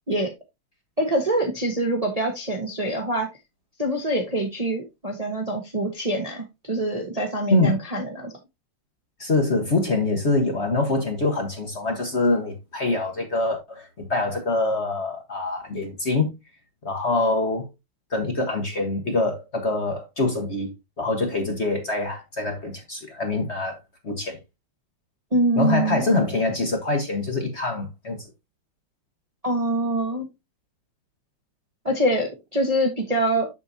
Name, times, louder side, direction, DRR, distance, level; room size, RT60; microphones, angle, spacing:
voice 1, 1.0-3.3 3.8-8.3 25.3-26.1 29.4-30.3 31.8-33.5, right 1 dB, 25° right, 1.0 m, -24 dB
voice 2, 9.2-16.3 16.8-17.7 18.1-23.8 24.0-24.4 25.6-28.2, left 2 dB, 35° left, 1.4 m, -24 dB
7.1 x 6.7 x 2.7 m
omnidirectional pair, 2.3 m